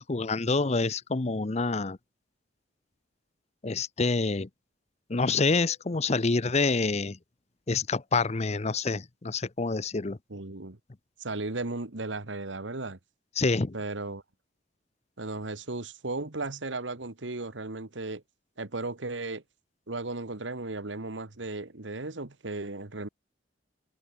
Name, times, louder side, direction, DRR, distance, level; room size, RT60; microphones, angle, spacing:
voice 1, 0.0-2.0 3.6-4.5 5.1-7.2 7.7-10.2 13.4-13.7, left 3 dB, 35° left, 0.7 m, -27 dB
voice 2, 10.3-10.8 11.2-13.0 13.7-14.2 15.2-18.2 18.6-19.4 19.9-23.1, right 2 dB, 80° right, 1.7 m, -35 dB
head